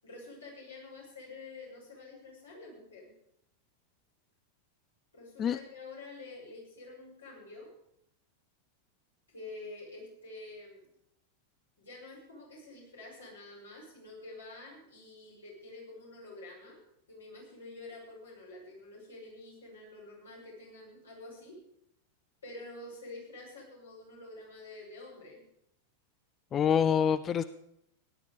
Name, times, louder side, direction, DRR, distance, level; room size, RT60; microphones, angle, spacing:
voice 1, 0.0-3.1 5.1-7.7 9.3-10.9 11.8-16.8 17.1-21.6 22.4-25.4, left 2 dB, 70° left, -3 dB, 6.4 m, -48 dB
voice 2, 26.5-27.4, left 8 dB, 25° left, 15 dB, 0.4 m, -26 dB
17.0 x 11.0 x 5.0 m, 0.77 s
figure-of-eight pair, 90°, 0 cm